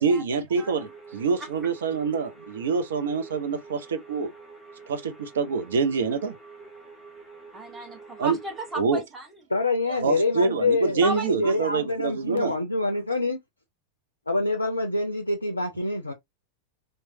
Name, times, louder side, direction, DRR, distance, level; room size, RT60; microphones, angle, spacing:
voice 1, 0.0-4.3 4.9-6.3 8.2-8.4 8.8-9.0 10.0-12.5, right 5 dB, 65° right, 0.5 m, -26 dB
sound 1, 0.5-8.8, right 4 dB, 10° left, 1.2 m, -47 dB
voice 2, 7.5-9.3 9.9-10.0 11.0-11.5, right 1 dB, 15° right, 1.2 m, -34 dB
voice 3, 9.5-13.4 14.3-16.1, left 2 dB, 80° left, 0.4 m, -26 dB
3.0 x 2.1 x 2.6 m
figure-of-eight pair, 90°, 0 cm